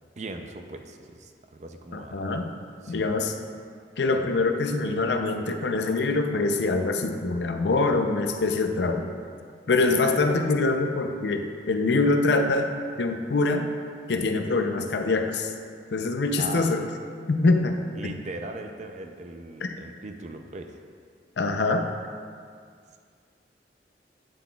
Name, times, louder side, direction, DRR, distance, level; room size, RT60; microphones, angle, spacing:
voice 1, 0.2-2.2 2.8-3.1 9.9-10.0 16.4-16.7 18.0-20.8, right 2 dB, 40° right, 5 dB, 0.5 m, -39 dB
voice 2, 1.9-2.5 2.9-3.3 4.0-9.1 9.7-12.7 13.0-13.7 14.1-15.5 15.9-16.8 17.3-17.8 18.0-18.1 21.4-21.8, left 3 dB, 80° left, 5 dB, 0.5 m, -24 dB
9.4 x 7.5 x 2.3 m, 2.1 s
head